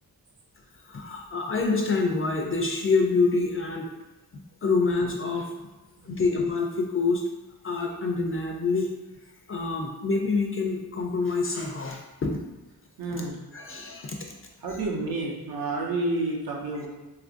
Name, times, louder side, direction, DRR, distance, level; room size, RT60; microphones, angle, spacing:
voice 1, 0.8-3.9 4.6-5.5 6.0-7.2 7.6-8.9 9.5-12.4 13.1-13.2 13.5-14.2, left 4 dB, 35° left, 1 dB, 0.4 m, -26 dB
voice 2, 13.0-13.3 14.6-16.9, right 2 dB, 65° right, -2 dB, 0.7 m, -29 dB
2.9 x 2.5 x 2.5 m, 1.1 s
cardioid pair, 60°, 39 cm